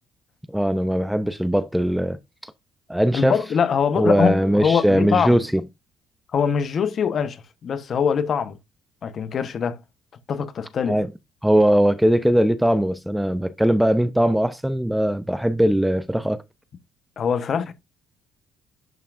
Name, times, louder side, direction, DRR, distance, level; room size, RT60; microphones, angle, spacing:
voice 1, 0.5-2.5 2.9-3.4 4.0-5.6 10.9-11.1 11.4-16.4, equal, 5° right, 0.6 m, -20 dB
voice 2, 3.1-5.4 6.3-8.6 9.0-9.8 10.3-11.0 17.2-17.7, left 7 dB, 45° left, 1.0 m, -23 dB
11.0 x 5.7 x 2.5 m
cardioid pair, 115°, 0 cm